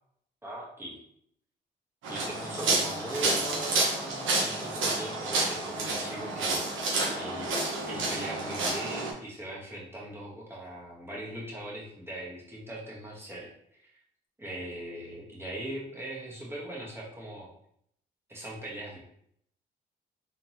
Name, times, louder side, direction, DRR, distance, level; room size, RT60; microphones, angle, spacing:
voice 1, 0.4-1.0 2.0-6.7 7.1-13.9 14.4-17.5 18.3-19.0, right 1 dB, 10° right, -4 dB, 1.4 m, -40 dB
sound 1, 2.0-9.1, right 2 dB, 75° right, 1.2 m, -29 dB
3.7 x 3.5 x 2.9 m, 0.68 s
cardioid pair, 90°, 20 cm